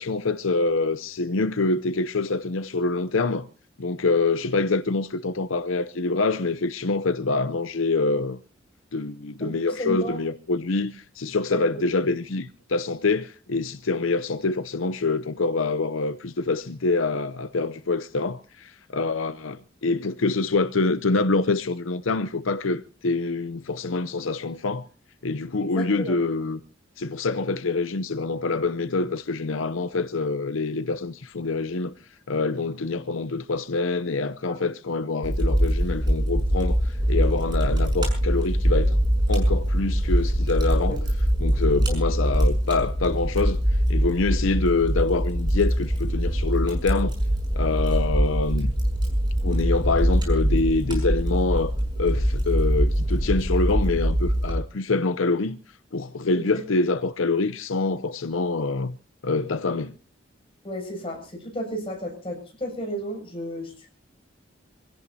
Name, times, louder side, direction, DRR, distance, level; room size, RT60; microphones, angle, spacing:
voice 1, 0.0-3.5 3.8-8.4 8.9-24.8 25.2-26.6 27.0-31.9 32.3-39.0 39.3-41.0 41.4-43.6 43.9-47.1 47.6-48.7 49.4-55.6 55.9-59.0 59.2-59.9, left 3 dB, 85° left, 0.7 m, -25 dB
voice 2, 9.4-10.2 11.5-11.6 25.6-26.2 34.5-34.6 40.8-41.0 41.9-42.0 56.3-56.5 60.6-63.9, equal, 30° left, 6.9 m, -33 dB
Fire, 35.2-54.5, equal, 20° right, 5.9 m, -23 dB
26.5 x 17.0 x 2.8 m
head